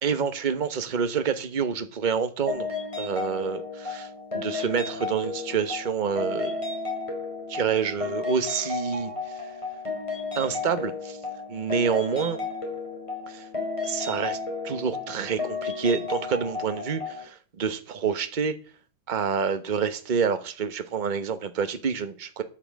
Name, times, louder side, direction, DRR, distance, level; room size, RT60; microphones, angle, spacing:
voice 1, 0.0-2.7 3.0-4.1 4.3-6.6 7.5-9.1 10.3-11.2 11.5-12.4 13.3-13.5 13.8-14.4 14.6-18.5 19.1-22.4, right 6 dB, 35° right, 0.9 m, -27 dB
sound 1, 2.5-17.2, left 4 dB, 15° left, 4.1 m, -33 dB
9.5 x 8.7 x 7.5 m
omnidirectional pair, 2.1 m